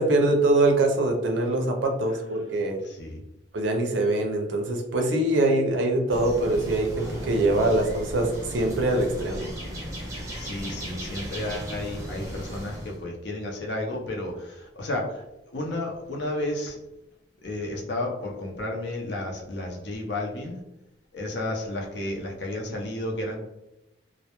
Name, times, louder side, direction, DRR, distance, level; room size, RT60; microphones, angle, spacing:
voice 1, 0.0-2.8 3.5-9.5, right 2 dB, 75° right, 3 dB, 0.5 m, -23 dB
voice 2, 2.8-3.2 10.4-15.2 15.5-16.8 17.4-20.6 21.1-23.4, left 1 dB, 70° left, 0 dB, 0.6 m, -32 dB
sound 1, 6.1-13.0, equal, 20° right, 0.6 m, -36 dB
2.2 x 2.0 x 2.8 m, 0.89 s
head